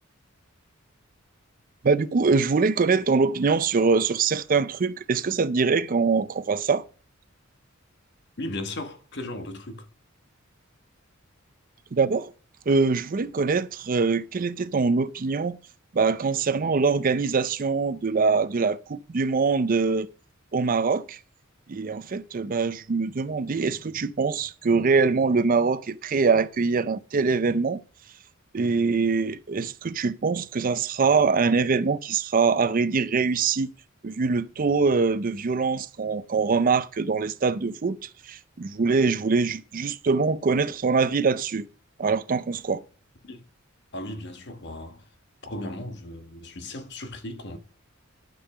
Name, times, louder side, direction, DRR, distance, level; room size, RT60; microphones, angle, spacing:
voice 1, 1.8-6.8 11.9-12.3 12.7-15.6 15.9-20.1 20.5-21.2 21.7-27.8 28.5-33.7 34.0-41.7 42.0-42.8, right 4 dB, 40° right, 0.5 m, -23 dB
voice 2, 8.4-9.9 43.2-43.5 43.9-45.0 45.4-47.6, left 1 dB, 55° left, 1.3 m, -36 dB
11.5 x 5.4 x 4.8 m
head